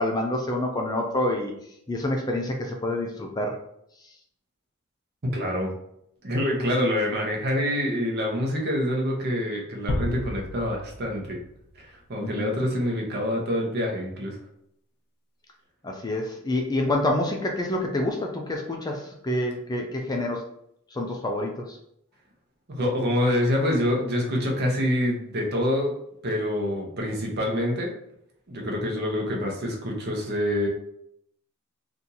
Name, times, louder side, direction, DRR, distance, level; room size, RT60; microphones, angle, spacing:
voice 1, 0.0-1.5 1.9-3.6 12.2-12.5 15.8-20.4 20.9-21.8, left 1 dB, 20° left, 2 dB, 0.4 m, -27 dB
voice 2, 5.2-5.7 6.2-11.4 11.8-14.4 22.7-25.9 26.2-27.9 28.5-30.7, left 1 dB, 50° right, 0 dB, 0.8 m, -26 dB
sound 1, 9.9-11.8, left 1 dB, 85° left, 0.6 m, -32 dB
2.8 x 2.5 x 3.8 m, 0.75 s
head